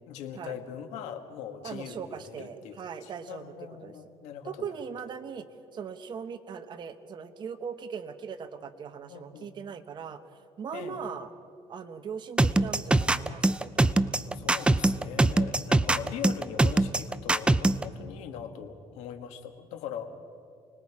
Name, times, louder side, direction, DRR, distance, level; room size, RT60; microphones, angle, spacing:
voice 1, 0.1-4.7 9.1-9.5 10.7-11.0 14.3-20.1, left 8 dB, 90° left, 6 dB, 1.8 m, -41 dB
voice 2, 1.6-3.5 3.8-3.9 4.4-5.5 5.7-10.2 10.6-11.3 11.7-14.6, right 6 dB, 40° right, 8 dB, 1.2 m, -40 dB
sound 1, 12.4-17.8, right 2 dB, 10° right, 0.5 m, -22 dB
29.0 x 20.0 x 4.9 m, 2.3 s
cardioid pair, 130°, 11 cm